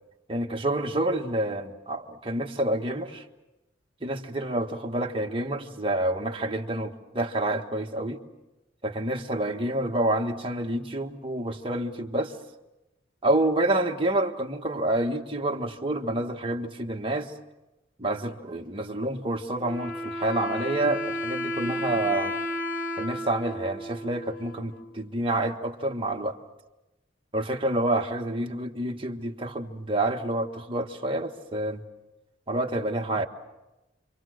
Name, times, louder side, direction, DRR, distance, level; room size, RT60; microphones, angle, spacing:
voice 1, 0.3-3.2 4.0-8.2 8.8-12.3 13.2-17.3 18.0-22.3 23.0-26.4 27.3-31.8 32.5-33.3, right 1 dB, 25° right, 2 dB, 1.6 m, -28 dB
Wind instrument woodwind instrument, 19.6-25.1, left 1 dB, 45° left, 2.0 m, -33 dB
29.0 x 25.0 x 6.5 m, 1.0 s
head